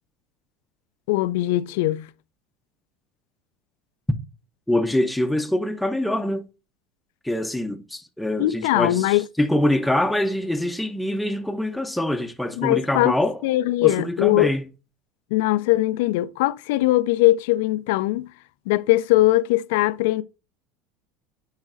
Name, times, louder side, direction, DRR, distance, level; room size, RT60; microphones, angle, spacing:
voice 1, 1.1-2.1 8.4-9.2 12.6-13.1 13.4-14.5 15.3-18.3 18.7-20.2, left 17 dB, 70° left, 0.3 m, -20 dB
voice 2, 4.7-6.5 7.2-13.4 13.8-14.6, left 1 dB, 5° left, 0.6 m, -24 dB
10.5 x 4.0 x 2.5 m
hypercardioid pair, 80°, 0 cm